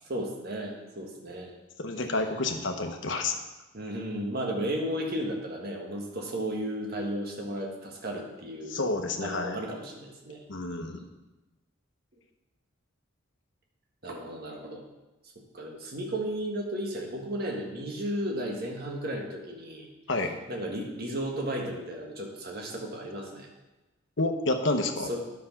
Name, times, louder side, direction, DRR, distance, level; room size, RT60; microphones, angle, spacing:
voice 1, 0.1-1.5 3.7-8.8 9.2-10.4 10.8-11.0 14.0-14.8 15.5-19.9 20.5-23.5 25.1-25.2, right 1 dB, 50° right, 0 dB, 1.5 m, -34 dB
voice 2, 1.8-3.3 8.7-9.6 10.5-11.0 20.1-20.4 24.2-25.1, left 2 dB, 60° left, 5 dB, 1.0 m, -29 dB
9.9 x 6.0 x 5.8 m, 1.1 s
head